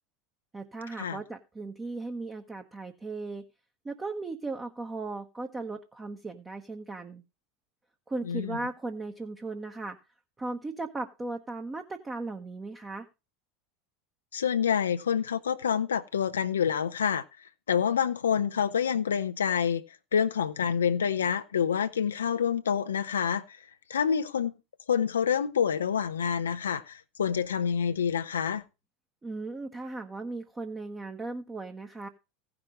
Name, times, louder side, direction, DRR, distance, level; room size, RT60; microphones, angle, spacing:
voice 1, 0.5-3.4 3.8-7.2 8.1-10.0 10.4-13.1 29.2-32.1, right 3 dB, 15° right, 1.0 m, -37 dB
voice 2, 8.2-8.6 14.3-19.8 20.1-24.5 24.9-28.6, left 7 dB, 70° left, 0.6 m, -27 dB
16.0 x 6.0 x 3.7 m
figure-of-eight pair, 80°, 0 cm